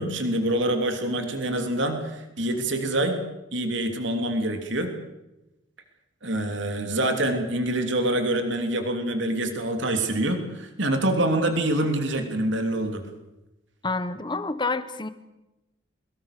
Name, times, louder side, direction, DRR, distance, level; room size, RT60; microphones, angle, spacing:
voice 1, 0.0-3.2 3.5-5.0 6.2-13.1, right 1 dB, 60° right, 6 dB, 3.2 m, -26 dB
voice 2, 13.8-15.1, left 3 dB, 20° left, 13 dB, 1.2 m, -28 dB
23.0 x 22.0 x 6.8 m, 0.97 s
head